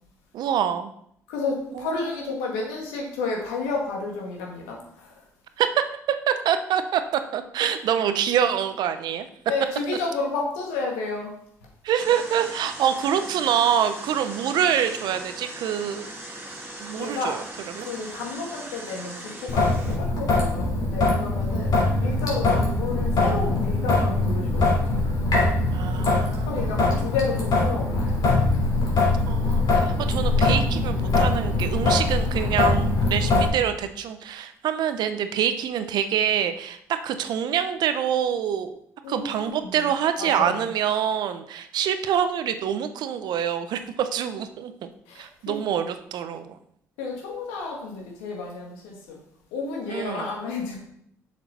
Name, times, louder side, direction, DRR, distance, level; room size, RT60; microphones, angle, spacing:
voice 1, 0.3-0.9 1.7-1.9 5.6-5.8 6.3-9.3 11.8-16.1 16.8-17.4 17.8-17.9 25.7-26.7 29.0-29.6 30.0-38.8 39.1-44.9 45.2-46.6 49.9-50.2, right 9 dB, 65° right, 9 dB, 0.8 m, -25 dB
voice 2, 1.3-5.2 9.5-11.3 17.0-17.4 17.8-24.9 26.4-28.2 39.0-39.9 40.2-40.7 45.1-45.6 47.0-49.2 49.5-50.8, left 3 dB, 80° left, 0 dB, 2.1 m, -31 dB
sound 1, 12.0-20.0, right 1 dB, 25° right, 2.6 m, -39 dB
Traffic noise roadway noise / Drip / Trickle dribble, 19.5-33.5, left 2 dB, 55° left, 3.3 m, -22 dB
7.0 x 6.3 x 4.2 m, 0.69 s
hypercardioid pair, 50°, 8 cm